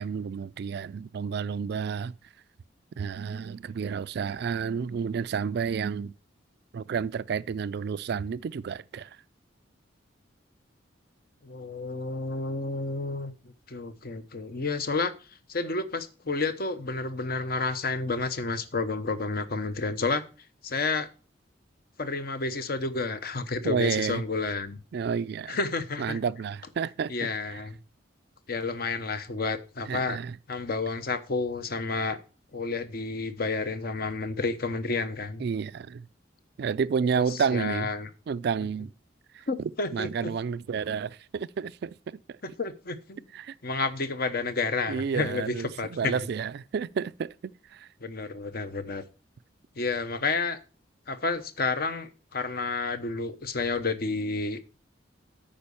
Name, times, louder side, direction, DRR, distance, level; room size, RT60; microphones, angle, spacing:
voice 1, 0.0-2.1 3.0-6.1 6.7-9.2 23.6-24.2 24.9-25.6 26.0-27.6 29.9-30.4 35.4-36.1 36.6-37.9 38.3-38.9 39.3-42.4 43.3-43.6 44.9-47.9, right 6 dB, 60° right, 0.3 m, -31 dB
voice 2, 11.4-20.2 20.6-21.1 22.0-24.8 25.5-26.2 27.1-27.8 28.5-30.2 30.5-32.2 32.5-35.4 37.2-38.1 39.5-40.3 42.6-43.2 43.6-46.2 48.0-49.0 49.8-50.6 51.1-54.6, left 3 dB, 55° left, 0.9 m, -30 dB
8.8 x 5.2 x 6.9 m
head